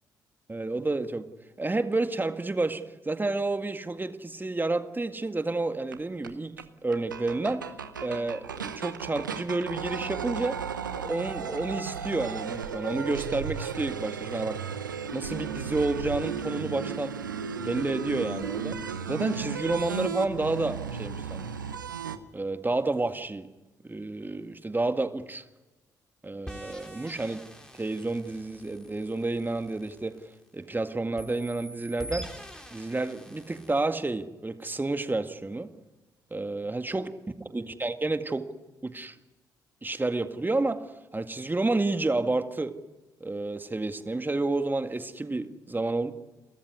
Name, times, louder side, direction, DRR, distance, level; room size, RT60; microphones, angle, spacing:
voice 1, 0.5-1.3 1.6-6.5 6.8-7.6 8.0-10.6 10.9-14.6 15.1-17.1 17.6-18.8 19.1-21.5 22.3-23.5 23.8-25.5 26.2-27.4 27.7-30.2 30.5-32.3 32.7-35.7 36.3-37.1 37.5-38.5 38.8-39.2 39.8-40.8 41.1-42.7 43.2-46.1, right 2 dB, 20° right, 8 dB, 1.9 m, -30 dB
sound 1, 5.9-6.0 6.2-6.3 6.6-6.7 6.9-22.2, right 6 dB, 85° right, 0.8 m, -35 dB
sound 2, 26.5-30.7 31.2-33.9, equal, 5° left, 3.9 m, -45 dB
30.0 x 13.5 x 9.7 m, 1.1 s
figure-of-eight pair, 40°, 10 cm